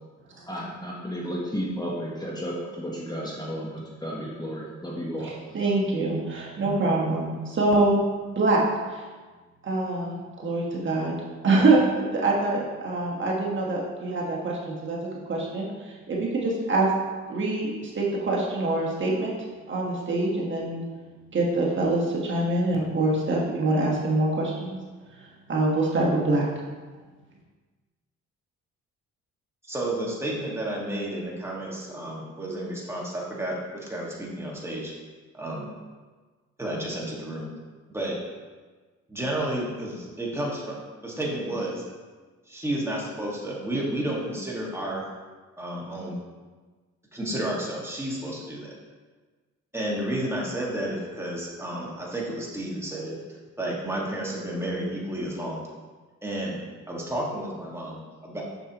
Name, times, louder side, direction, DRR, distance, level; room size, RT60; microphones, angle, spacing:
voice 1, 0.5-5.3, equal, 15° left, -4 dB, 1.1 m, -33 dB
voice 2, 5.2-8.0 8.3-8.6 8.9-9.0 9.6-11.1 11.4-15.0 15.3-16.9 17.3-19.3 19.7-20.8 21.3-24.8 25.5-26.5, right 2 dB, 40° right, -3 dB, 1.4 m, -25 dB
voice 3, 29.7-34.9 35.3-35.7 36.6-37.5 37.9-38.1 39.1-40.8 41.0-41.8 42.5-45.0 45.6-46.2 47.1-48.8 49.7-53.2 53.6-55.6 56.2-56.6 56.9-58.4, right 1 dB, 10° right, -4 dB, 1.8 m, -31 dB
6.7 x 6.4 x 3.0 m, 1.4 s
cardioid pair, 90°, 30 cm